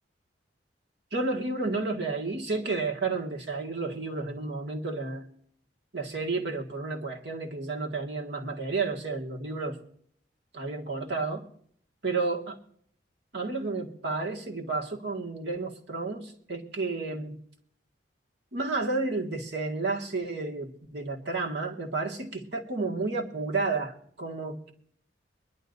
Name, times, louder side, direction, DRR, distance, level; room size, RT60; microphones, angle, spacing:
voice 1, 1.1-5.3 5.9-9.8 10.5-11.4 12.0-12.5 13.3-17.4 18.5-24.7, right 3 dB, 70° right, 0 dB, 1.9 m, -31 dB
23.0 x 11.5 x 2.7 m, 0.63 s
head